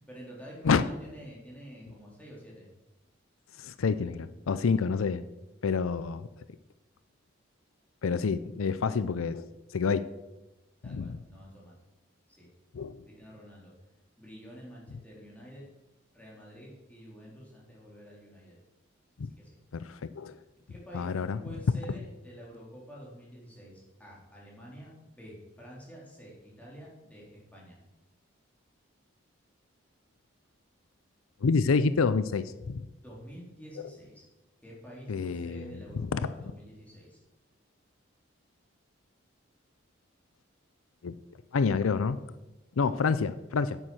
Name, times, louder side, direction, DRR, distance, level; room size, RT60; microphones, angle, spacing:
voice 1, 0.0-2.7 10.8-11.8 12.3-12.5 13.0-13.7 14.2-15.7 16.1-18.6 19.4-19.6 20.7-21.1 21.4-27.8 33.0-34.2 34.6-37.2, equal, 5° left, -5 dB, 3.6 m, -48 dB
voice 2, 3.6-5.2 5.6-6.3 8.0-10.1 10.8-11.2 12.7-13.0 19.2-19.3 19.7-20.4 20.9-21.4 31.4-32.8 35.1-35.7 35.9-36.2 41.0-41.1 41.5-42.2 42.8-43.8, left 5 dB, 80° left, 14 dB, 0.5 m, -28 dB
9.1 x 8.8 x 6.4 m, 1.0 s
head